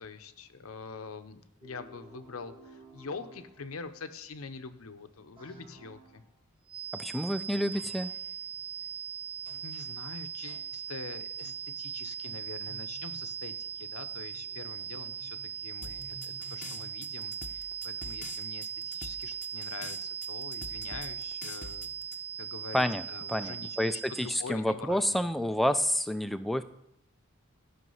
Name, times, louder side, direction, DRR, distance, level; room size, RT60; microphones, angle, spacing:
voice 1, 0.0-6.2 9.6-21.9 22.4-25.2, left 4 dB, 80° left, 10 dB, 0.7 m, -45 dB
sound 1, 1.6-4.0 5.3-6.3 7.7-8.4 9.4-9.9 10.5-10.8 11.4-11.7 12.2-17.3, right 1 dB, 25° right, 2.1 m, -54 dB
sound 2, 6.7-24.4, right 8 dB, 40° right, 0.8 m, -39 dB
voice 2, 6.9-8.1 22.7-23.0 23.3-26.6, equal, ahead, 10 dB, 0.4 m, -29 dB
sound 3, 15.8-22.2, left 5 dB, 40° left, 0.7 m, -45 dB
12.5 x 6.0 x 5.5 m, 0.78 s
head